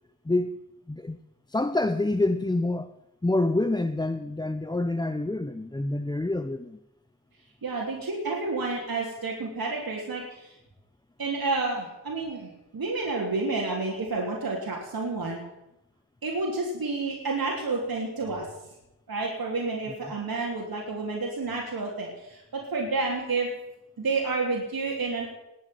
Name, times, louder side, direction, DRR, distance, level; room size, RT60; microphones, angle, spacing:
voice 1, 1.5-2.9 3.2-6.8, left 2 dB, 10° left, 0.6 m, -27 dB
voice 2, 7.6-10.5 11.2-15.4 16.2-18.5 19.1-23.5 24.0-25.3, right 3 dB, 65° right, 3.5 m, -30 dB
20.0 x 7.4 x 9.4 m
wide cardioid pair, 125°, 38 cm